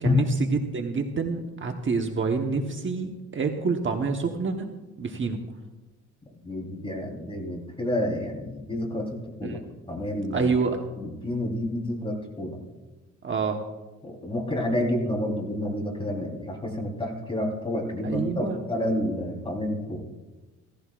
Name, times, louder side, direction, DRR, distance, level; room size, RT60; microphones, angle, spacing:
voice 1, 0.0-4.7 5.0-5.4 9.4-9.6 10.3-10.9 13.2-13.6 18.0-18.6, right 4 dB, 40° right, 4 dB, 1.2 m, -27 dB
voice 2, 6.4-9.1 9.4-9.6 9.9-10.5 10.9-12.6 14.0-20.1, left 1 dB, 20° left, 0 dB, 3.9 m, -29 dB
17.0 x 15.0 x 2.5 m, 1.1 s
cardioid pair, 90°, 30 cm